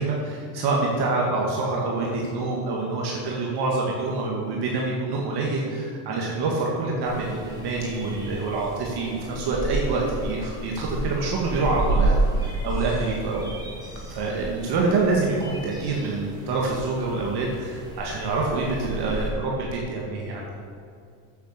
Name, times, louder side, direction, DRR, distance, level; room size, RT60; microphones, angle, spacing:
voice 1, 0.0-13.6 14.1-20.4, right 3 dB, 60° right, -2 dB, 2.0 m, -26 dB
sound 1, 7.0-19.3, right 2 dB, 10° right, 2.9 m, -31 dB
9.0 x 8.2 x 6.6 m, 2.4 s
supercardioid pair, 100°, 45 cm